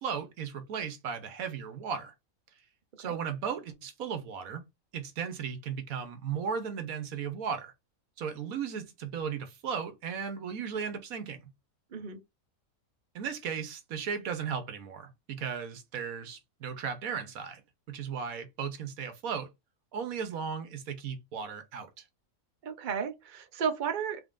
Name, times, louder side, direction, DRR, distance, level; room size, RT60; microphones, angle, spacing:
voice 1, 0.0-2.1 3.0-4.6 4.9-7.7 8.2-11.5 13.1-17.6 17.9-19.5 19.9-22.0, right 7 dB, 80° right, 1.3 m, -36 dB
voice 2, 11.9-12.2 22.6-24.2, right 7 dB, 40° right, 0.8 m, -33 dB
4.0 x 3.6 x 2.5 m
omnidirectional pair, 1.5 m